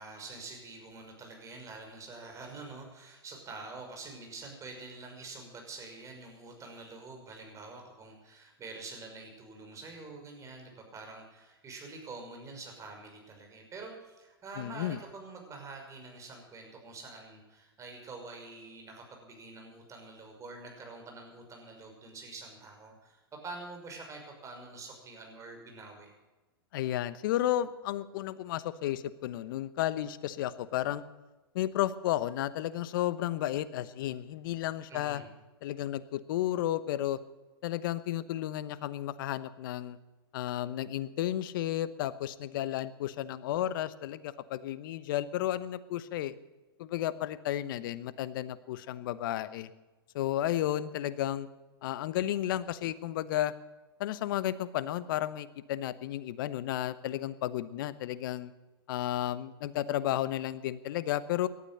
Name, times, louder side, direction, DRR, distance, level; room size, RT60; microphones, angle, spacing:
voice 1, 0.0-26.1 34.9-35.3, right 3 dB, 25° right, 2 dB, 5.8 m, -46 dB
voice 2, 14.6-15.0 26.7-31.0 31.5-35.2 35.6-37.2 37.6-40.0 40.3-46.3 46.8-49.7 50.1-51.5 51.8-53.5 54.0-58.5 58.9-61.5, left 13 dB, 60° left, 15 dB, 1.1 m, -33 dB
18.0 x 12.5 x 5.6 m, 1.2 s
hypercardioid pair, 105°, 13 cm